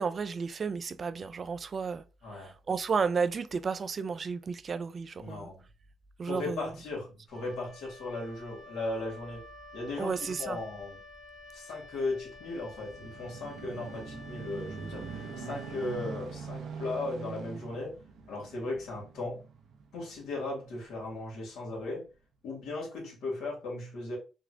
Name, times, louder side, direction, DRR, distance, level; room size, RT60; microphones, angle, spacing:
voice 1, 0.0-2.0 2.7-5.5 6.2-6.7 10.0-10.6, right 5 dB, 40° right, 0.3 m, -32 dB
voice 2, 2.2-2.5 5.2-5.6 6.3-9.4 9.7-11.0 11.5-18.0 18.3-19.4 19.9-22.1 22.4-24.2, left 2 dB, 85° left, 1.8 m, -37 dB
Wind instrument woodwind instrument, 7.3-16.8, left 1 dB, 25° left, 1.2 m, -50 dB
sound 1, 12.3-21.1 21.7-21.8, right 5 dB, 75° right, 0.7 m, -43 dB
3.7 x 2.4 x 3.2 m
cardioid pair, 90°, 0 cm